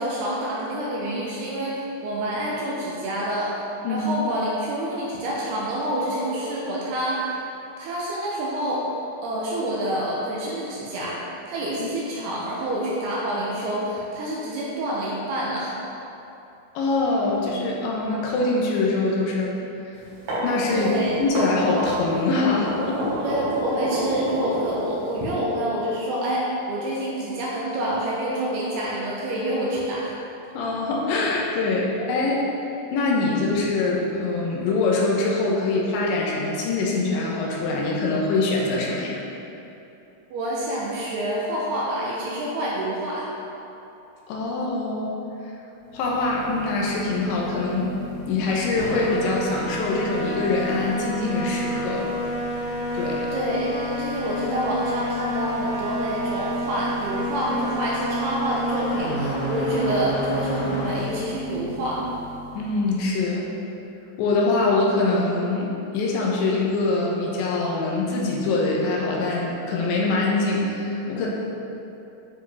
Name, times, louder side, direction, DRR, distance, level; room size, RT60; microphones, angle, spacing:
voice 1, 0.0-3.5 3.9-7.2 7.8-8.9 9.2-11.2 11.5-15.8 20.7-21.2 23.2-30.1 40.3-43.3 53.3-62.0, right 1 dB, 75° right, -5 dB, 2.6 m, -27 dB
voice 2, 16.7-19.5 20.4-20.9 21.2-23.2 30.5-32.5 32.9-39.2 44.3-45.2 45.5-45.6 45.9-47.9 48.3-52.1 52.9-53.3 62.6-63.5 64.2-71.3, left 3 dB, 80° left, -3 dB, 3.1 m, -24 dB
sound 1, 20.0-25.2, right 1 dB, 55° right, 2.5 m, -29 dB
sound 2, 45.8-63.1, equal, 55° left, 2.3 m, -30 dB
9.7 x 4.9 x 3.5 m, 2.9 s
omnidirectional pair, 5.2 m